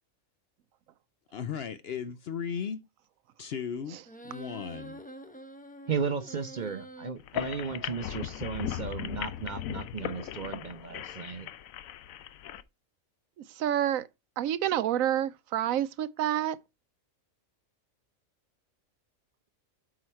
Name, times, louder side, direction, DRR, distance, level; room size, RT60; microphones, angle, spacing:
voice 1, 1.3-2.8 3.4-4.0 4.2-5.0, left 7 dB, 60° left, 0.7 m, -36 dB
sound 1, 4.1-7.1, right 1 dB, 5° left, 0.7 m, -46 dB
voice 2, 5.9-11.5, right 6 dB, 45° right, 0.7 m, -35 dB
sound 2, 7.2-12.6, left 11 dB, 75° left, 1.0 m, -37 dB
voice 3, 13.6-14.1 14.4-16.6, right 11 dB, 75° right, 1.0 m, -28 dB
8.1 x 4.8 x 4.3 m
omnidirectional pair, 1.5 m